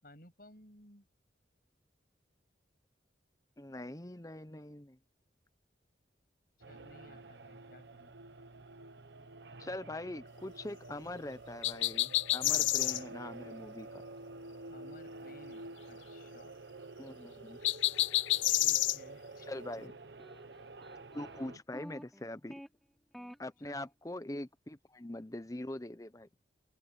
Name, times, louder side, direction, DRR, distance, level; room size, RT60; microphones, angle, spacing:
voice 1, 0.0-1.1 6.7-8.1 14.7-16.6 18.4-20.0 21.5-21.6 23.6-23.8, left 1 dB, 50° left, 7.1 m, -58 dB
voice 2, 3.6-5.0 9.6-13.9 17.0-17.6 19.5-19.9 21.1-22.6 23.4-26.3, left 1 dB, 20° left, 0.8 m, -43 dB
sound 1, 6.6-21.6, right 2 dB, 70° right, 1.1 m, -49 dB
sound 2, 11.6-13.0 17.6-19.0, left 17 dB, 85° left, 0.5 m, -29 dB
sound 3, 17.9-19.5 20.2-22.7 23.1-23.4, equal, ahead, 3.5 m, -53 dB
head